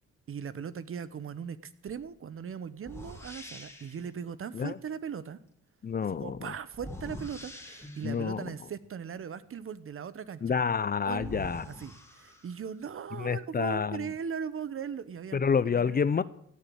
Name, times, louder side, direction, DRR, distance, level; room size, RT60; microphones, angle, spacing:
voice 1, 0.3-1.6 1.8-5.4 6.2-10.5 11.0-11.4 11.7-15.4 15.7-16.0, right 7 dB, 45° right, 15 dB, 1.0 m, -39 dB
sound 1, 1.9-2.0 2.8-4.1 6.7-8.3 10.6-10.7 11.1-12.8, left 1 dB, 10° left, 2.6 m, -44 dB
voice 2, 5.8-6.5 8.0-8.5 10.4-11.6 13.2-14.1 15.3-16.2, left 6 dB, 30° left, 17 dB, 0.6 m, -28 dB
17.0 x 7.1 x 8.7 m, 0.70 s
cardioid pair, 90°, 30 cm